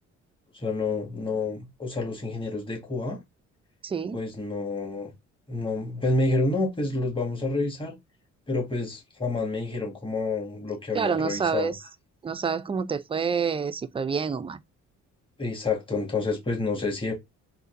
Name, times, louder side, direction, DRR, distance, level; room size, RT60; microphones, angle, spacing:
voice 1, 0.5-3.2 4.1-5.1 5.5-7.9 8.5-11.7 15.4-17.1, left 3 dB, 15° left, 1.5 m, -28 dB
voice 2, 3.8-4.2 10.9-11.8 12.2-14.6, right 6 dB, 20° right, 0.4 m, -28 dB
3.8 x 2.6 x 2.5 m
cardioid pair, 90°, 30 cm